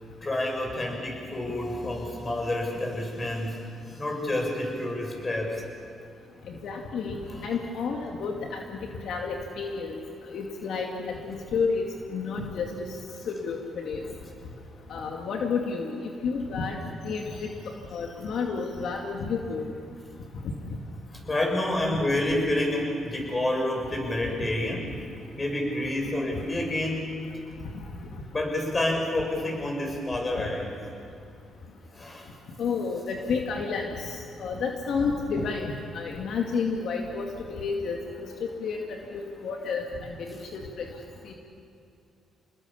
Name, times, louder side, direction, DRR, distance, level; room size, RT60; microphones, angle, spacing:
voice 1, 0.2-3.6 3.9-5.6 7.3-7.4 21.2-24.9 25.3-27.0 28.3-30.7 31.9-32.3, left 1 dB, 25° left, 1 dB, 7.0 m, -28 dB
voice 2, 6.5-10.0 10.3-11.8 12.1-13.0 13.3-14.0 14.9-15.9 16.2-16.8 17.0-19.6 26.3-26.4 32.6-40.9 41.2-41.3, left 5 dB, 70° left, 1 dB, 2.3 m, -31 dB
27.5 x 20.5 x 7.2 m, 2.5 s
cardioid pair, 90°, 0 cm